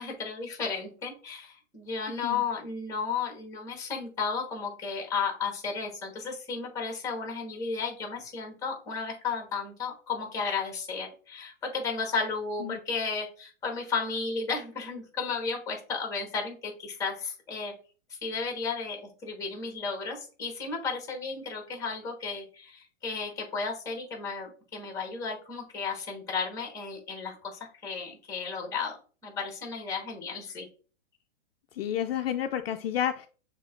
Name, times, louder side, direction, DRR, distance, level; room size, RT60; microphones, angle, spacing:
voice 1, 0.0-17.7 18.1-30.7, left 5 dB, 10° left, 2 dB, 1.2 m, -34 dB
voice 2, 31.7-33.3, left 10 dB, 55° left, 7 dB, 0.4 m, -30 dB
6.5 x 2.9 x 2.5 m, 0.38 s
hypercardioid pair, 155°, 36 cm